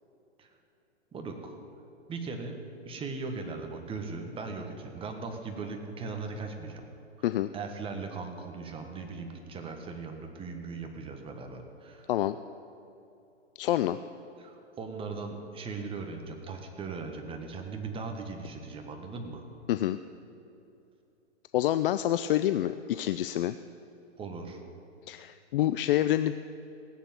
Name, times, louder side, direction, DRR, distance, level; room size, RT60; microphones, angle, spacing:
voice 1, 1.1-1.6 2.1-2.6 2.8-6.8 7.5-12.1 14.4-19.5 22.9-23.0 24.2-24.6, right 4 dB, 15° right, 4 dB, 1.4 m, -39 dB
voice 2, 13.6-14.0 19.7-20.0 21.5-23.6 25.1-26.3, left 13 dB, 50° left, 12 dB, 0.5 m, -27 dB
16.5 x 8.4 x 9.1 m, 2.8 s
hypercardioid pair, 140°, 35 cm